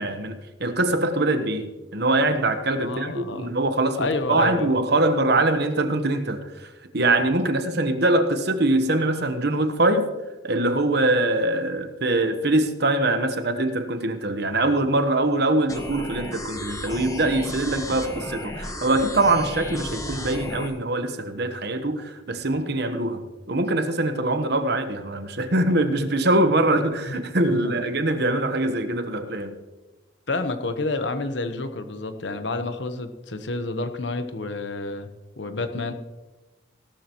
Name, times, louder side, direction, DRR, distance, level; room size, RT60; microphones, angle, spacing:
voice 1, 0.0-10.1 10.4-29.6, right 2 dB, 60° right, 8 dB, 1.1 m, -23 dB
voice 2, 2.8-3.5 4.0-4.7 27.5-27.8 30.3-35.1 35.4-35.9, left 3 dB, 70° left, 8 dB, 1.1 m, -29 dB
sound 1, 15.7-20.7, left 1 dB, 20° left, 1.2 m, -34 dB
17.0 x 12.5 x 3.1 m, 1.2 s
head